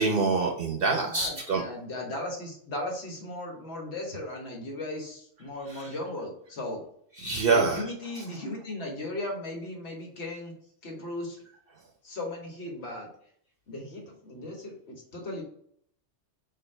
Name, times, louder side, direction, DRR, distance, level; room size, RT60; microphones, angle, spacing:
voice 1, 0.0-1.6 5.7-5.9 7.2-7.8 8.1-8.2, right 4 dB, 55° right, 1 dB, 0.8 m, -26 dB
voice 2, 1.1-6.8 7.5-10.5 10.8-11.4 12.0-13.1 13.7-15.4, left 1 dB, 65° left, 0 dB, 1.4 m, -37 dB
4.4 x 2.6 x 4.3 m, 0.64 s
omnidirectional pair, 1.2 m